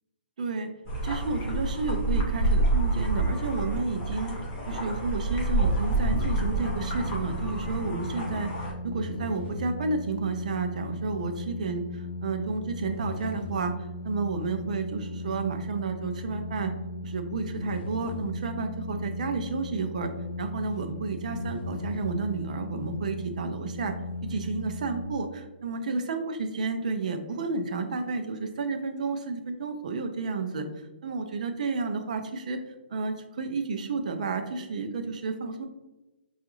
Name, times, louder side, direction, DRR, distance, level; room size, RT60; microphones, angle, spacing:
voice 1, 0.4-0.7 1.0-4.3 4.7-13.7 14.0-16.7 17.0-20.1 20.4-23.9 24.2-30.7 31.0-32.6 32.9-35.7, right 4 dB, 45° right, 6 dB, 0.5 m, -31 dB
sound 1, 0.9-8.7, right 2 dB, 15° left, 0.6 m, -28 dB
sound 2, 6.2-25.0, left 2 dB, 85° left, 0.8 m, -37 dB
5.0 x 2.4 x 2.9 m, 1.0 s
hypercardioid pair, 175°, 6 cm